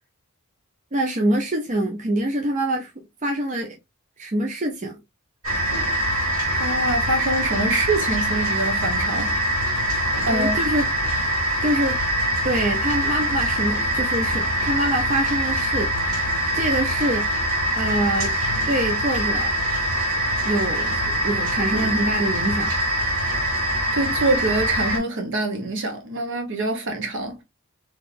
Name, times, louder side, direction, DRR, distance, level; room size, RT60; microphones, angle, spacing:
voice 1, 0.9-2.9 3.2-3.8 4.2-5.0 10.3-10.9 11.6-12.0 12.4-15.9 16.5-17.3 17.8-18.3 18.7-19.5 20.4-22.7, right 1 dB, 35° right, 0.6 m, -25 dB
sound 1, 5.4-25.0, equal, 75° right, 2.3 m, -23 dB
voice 2, 6.6-9.3 10.2-10.6 23.9-27.4, right 2 dB, 60° right, 1.1 m, -25 dB
3.6 x 3.1 x 2.6 m
head